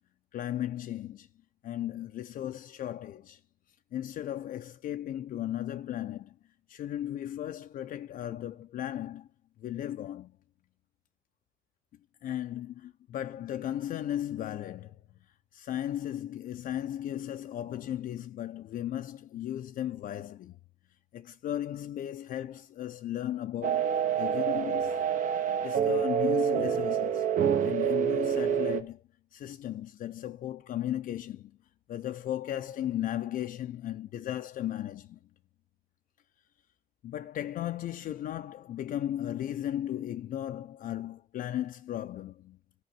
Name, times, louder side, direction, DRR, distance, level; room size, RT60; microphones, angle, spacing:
voice 1, 0.3-1.3 1.6-3.4 3.9-6.3 6.7-9.3 9.6-10.4 12.2-15.0 15.5-20.6 21.1-23.9 24.2-25.0 25.6-27.3 27.6-29.0 29.3-31.5 31.9-35.2 37.0-42.6, left 12 dB, 55° left, 0.6 m, -36 dB
sound 1, 23.6-28.8, right 8 dB, 50° right, 1.1 m, -27 dB
12.5 x 5.1 x 7.6 m
cardioid pair, 110°, 17 cm